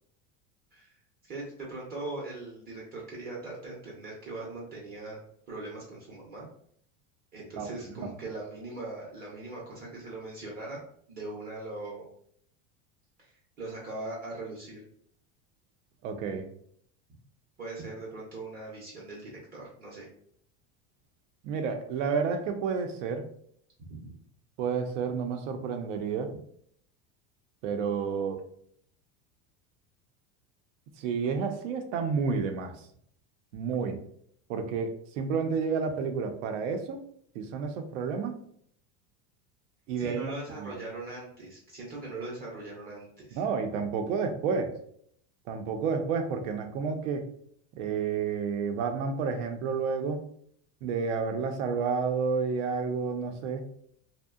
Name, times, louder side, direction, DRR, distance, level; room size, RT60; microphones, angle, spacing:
voice 1, 1.2-5.2 5.5-6.5 7.3-12.1 13.2-14.8 17.6-20.1 23.9-24.1 40.0-43.4, right 2 dB, 25° right, -4 dB, 0.5 m, -40 dB
voice 2, 7.6-8.0 16.0-16.5 21.4-23.2 24.6-26.3 27.6-28.4 31.0-32.9 33.5-34.0 34.5-37.0 37.3-38.4 39.9-40.8 43.3-44.7 45.5-47.3 47.7-50.2 50.8-53.7, right 5 dB, 90° right, 6 dB, 0.6 m, -30 dB
2.6 x 2.1 x 2.3 m, 0.65 s
supercardioid pair, 155°, 36 cm